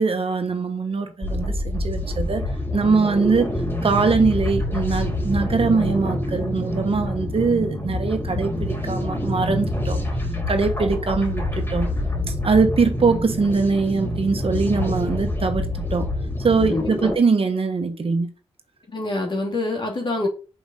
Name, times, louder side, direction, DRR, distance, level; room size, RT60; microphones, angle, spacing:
voice 1, 0.0-2.4 2.7-3.5 3.8-10.0 10.5-11.9 12.3-16.1 16.4-18.3, right 4 dB, 60° right, 1.4 m, -22 dB
sound 1, 1.2-17.2, left 1 dB, 20° left, 3.6 m, -26 dB
voice 2, 16.7-17.1 18.9-20.3, left 2 dB, 50° left, 2.9 m, -26 dB
6.2 x 4.8 x 3.9 m
supercardioid pair, 40°, 11 cm